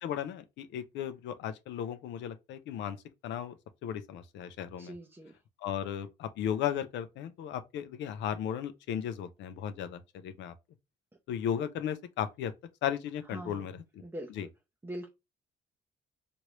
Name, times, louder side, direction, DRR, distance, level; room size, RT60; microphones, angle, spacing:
voice 1, 0.0-3.0 3.2-3.5 3.8-4.9 5.6-10.5 11.3-12.5 12.8-13.7 14.4-14.5, left 9 dB, 85° left, 0.5 m, -35 dB
voice 2, 4.8-5.4 13.3-13.7 14.0-14.3 14.8-15.1, right 1 dB, 10° right, 0.6 m, -42 dB
3.2 x 2.5 x 3.0 m
cardioid pair, 90°, 18 cm